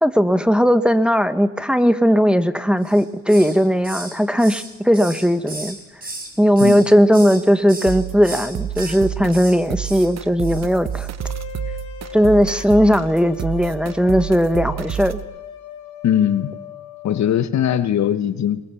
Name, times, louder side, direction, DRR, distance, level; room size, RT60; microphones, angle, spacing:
voice 1, 0.0-5.8 6.4-11.1 12.1-15.2, equal, 5° right, 10 dB, 1.1 m, -17 dB
Hiss, 2.8-3.6 3.8-6.3 6.6-7.4 7.7-7.9 8.2-9.0 9.3-9.6 9.8-10.1 10.4-10.6 10.9-11.1, right 2 dB, 30° right, 5.8 m, -34 dB
sound 1, 7.9-15.2, right 9 dB, 60° right, 1.1 m, -30 dB
sound 2, 11.2-17.3, left 10 dB, 85° left, 4.0 m, -39 dB
voice 2, 16.0-16.5 17.0-18.6, left 10 dB, 65° left, 12 dB, 1.5 m, -20 dB
22.0 x 21.0 x 7.2 m, 1.1 s
cardioid pair, 90°, 30 cm